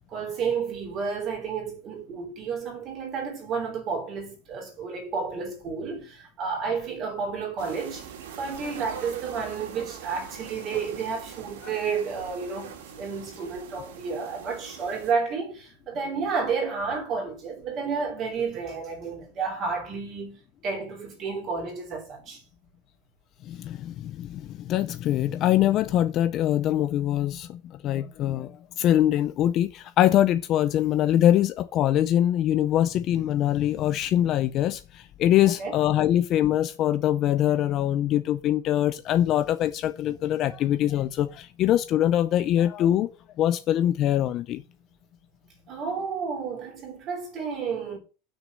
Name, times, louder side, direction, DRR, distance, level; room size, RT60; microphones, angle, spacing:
voice 1, 0.1-8.1 8.4-22.4 35.4-35.8 45.7-48.0, right 5 dB, 25° right, 3.4 m, -31 dB
sound 1, 7.6-15.1, right 8 dB, 80° right, 2.6 m, -42 dB
voice 2, 23.4-43.1 43.4-44.6, left 12 dB, 30° left, 0.5 m, -23 dB
8.1 x 6.3 x 7.4 m
supercardioid pair, 180°, 0 cm